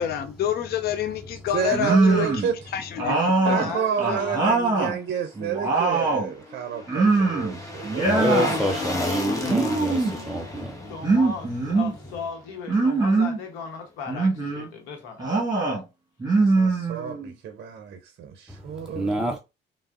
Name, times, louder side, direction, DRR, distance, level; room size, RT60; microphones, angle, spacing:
voice 1, 0.0-2.3 2.7-3.6, left 9 dB, 55° left, 0.4 m, -28 dB
voice 2, 1.5-2.7 3.4-8.6 8.9-9.1 16.4-19.3, right 8 dB, 60° right, 0.5 m, -30 dB
sound 1, 1.7-2.5 3.0-5.0 5.3-6.3 6.9-7.6 7.8-8.6 9.4-10.2 11.0-11.9 12.7-13.4 14.1-14.7 15.2-15.8 16.2-17.3, right 3 dB, 20° right, 1.2 m, -22 dB
voice 3, 3.6-4.7 8.2-9.8 10.4-10.5 10.9-15.4, left 5 dB, 90° left, 0.8 m, -37 dB
sound 2, 5.6-12.8 13.1-13.2, left 1 dB, 15° left, 0.9 m, -34 dB
voice 4, 7.6-10.9 18.5-19.4, equal, 5° right, 0.4 m, -28 dB
3.3 x 2.0 x 2.3 m
supercardioid pair, 65°, 20 cm